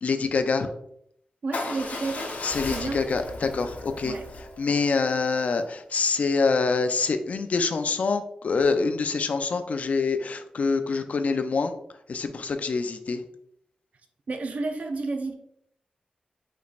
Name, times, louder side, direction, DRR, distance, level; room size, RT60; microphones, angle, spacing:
voice 1, 0.0-0.7 2.4-4.2 4.6-11.8 12.1-13.2, left 4 dB, 55° left, 8 dB, 0.4 m, -25 dB
voice 2, 1.4-2.3 2.7-3.0 4.0-4.2 14.3-15.3, right 3 dB, 60° right, 5 dB, 0.5 m, -31 dB
Motorcycle / Engine starting / Idling, 1.5-5.6, left 2 dB, 80° left, 0.9 m, -36 dB
5.0 x 4.1 x 2.4 m, 0.72 s
wide cardioid pair, 170°, 3 cm